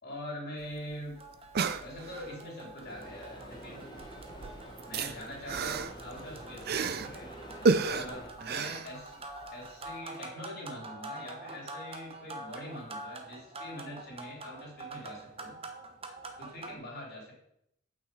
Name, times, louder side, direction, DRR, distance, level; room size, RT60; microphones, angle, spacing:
voice 1, 0.0-1.2 1.8-4.0 4.8-7.3 7.8-9.2 9.5-15.6 16.4-17.3, left 1 dB, 50° left, -3 dB, 3.7 m, -43 dB
sound 1, 0.6-0.7 0.9-1.0 1.3-2.4 3.4-3.7 4.0-7.2 7.7-9.5 9.9-10.0, right 4 dB, 50° right, 0.5 m, -31 dB
sound 2, 1.2-16.7, right 2 dB, 30° right, 1.0 m, -46 dB
sound 3, 2.9-8.3, equal, 20° left, 1.1 m, -47 dB
9.0 x 6.0 x 4.9 m, 0.75 s
head